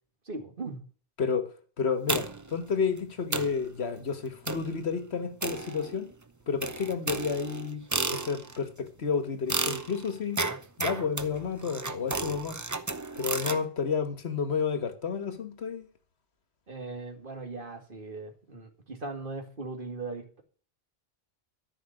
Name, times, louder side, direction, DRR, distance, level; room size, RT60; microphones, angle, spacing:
voice 1, 0.3-0.8 16.7-20.4, right 3 dB, 55° right, 2.4 m, -39 dB
voice 2, 1.2-1.5 1.8-6.1 6.5-7.8 8.1-10.4 10.8-12.6 13.2-15.9, left 5 dB, 85° left, 1.7 m, -31 dB
sound 1, 2.1-2.6 3.0-3.1 3.3-3.6 4.5-4.8 5.4-6.1 6.6-8.6 9.5-13.6, right 3 dB, 20° right, 0.7 m, -33 dB
13.5 x 5.7 x 8.9 m
omnidirectional pair, 1.1 m